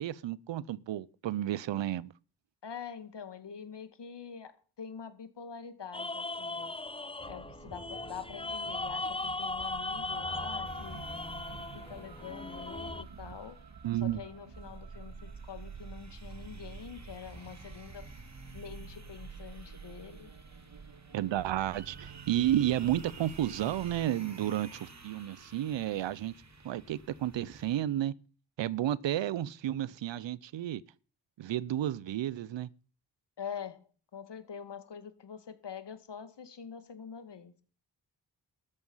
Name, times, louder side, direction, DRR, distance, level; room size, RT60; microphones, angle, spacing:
voice 1, 0.0-2.1 13.8-14.2 21.1-26.3 26.6-28.1 28.6-30.8 31.4-32.7, right 12 dB, 85° right, 0.8 m, -32 dB
voice 2, 2.6-6.7 7.3-11.1 11.7-13.6 14.0-18.1 18.5-20.3 33.4-33.9 34.1-37.5, left 7 dB, 70° left, 2.3 m, -45 dB
sound 1, 5.9-13.0, left 2 dB, 15° left, 0.8 m, -38 dB
sound 2, 7.2-24.0, right 6 dB, 60° right, 2.0 m, -49 dB
sound 3, 10.6-27.8, right 2 dB, 40° right, 3.0 m, -53 dB
13.5 x 12.5 x 5.6 m
supercardioid pair, 40°, 43 cm